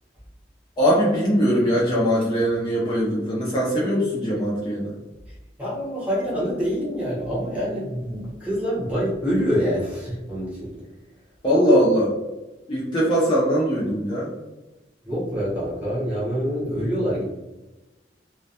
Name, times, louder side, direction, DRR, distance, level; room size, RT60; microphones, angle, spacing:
voice 1, 0.8-4.9 11.4-12.1 12.7-14.3 17.2-17.3, equal, 25° left, -6 dB, 0.4 m, -21 dB
voice 2, 5.6-10.7 15.0-17.2, equal, 10° right, -7 dB, 0.8 m, -26 dB
2.1 x 2.1 x 2.7 m, 1.1 s
head